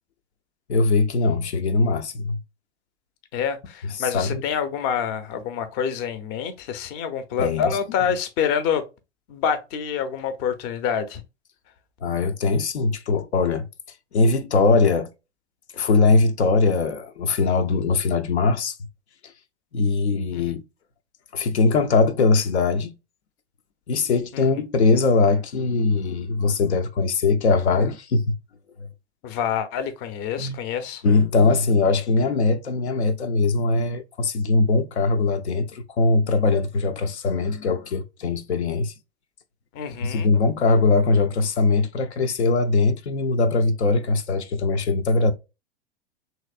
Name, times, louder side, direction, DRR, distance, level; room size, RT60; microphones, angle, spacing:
voice 1, 0.7-2.4 4.0-4.4 7.4-7.7 12.0-13.7 14.1-15.1 15.7-18.8 19.7-20.6 21.3-23.0 23.9-28.4 30.4-30.5 31.0-38.9 40.0-45.3, left 3 dB, 80° left, 0.5 m, -21 dB
voice 2, 3.3-8.8 9.3-11.2 20.3-20.6 24.3-24.4 29.2-31.0 39.7-40.3, left 7 dB, 35° left, 0.5 m, -27 dB
3.1 x 2.7 x 2.3 m
figure-of-eight pair, 100°, 33 cm